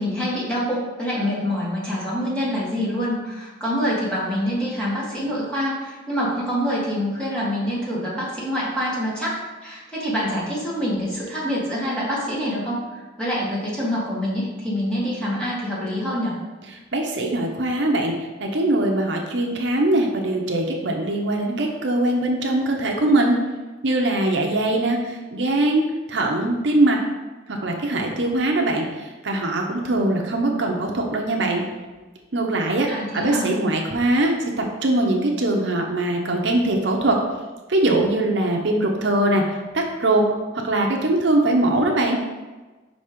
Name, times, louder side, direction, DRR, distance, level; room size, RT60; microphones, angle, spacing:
voice 1, 0.0-16.4 32.9-33.5, equal, 5° left, -7 dB, 1.7 m, -26 dB
voice 2, 16.9-18.1 18.4-23.4 23.8-27.0 27.5-28.9 29.2-31.6 32.3-32.9 33.1-37.2 37.7-39.4 39.7-40.2 40.6-42.2, right 1 dB, 65° right, 1 dB, 0.8 m, -21 dB
5.5 x 4.1 x 5.1 m, 1.2 s
head